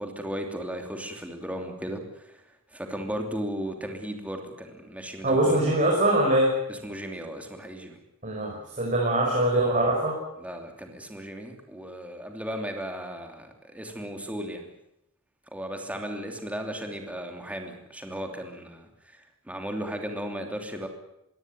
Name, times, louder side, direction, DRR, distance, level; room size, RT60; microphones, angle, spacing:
voice 1, 0.0-2.4 2.7-5.7 6.7-8.0 10.4-14.7 15.5-20.9, equal, 5° right, 3 dB, 2.9 m, -36 dB
voice 2, 5.2-6.5 8.2-10.2, right 1 dB, 35° right, -1 dB, 5.5 m, -23 dB
22.0 x 17.0 x 9.3 m, 0.83 s
head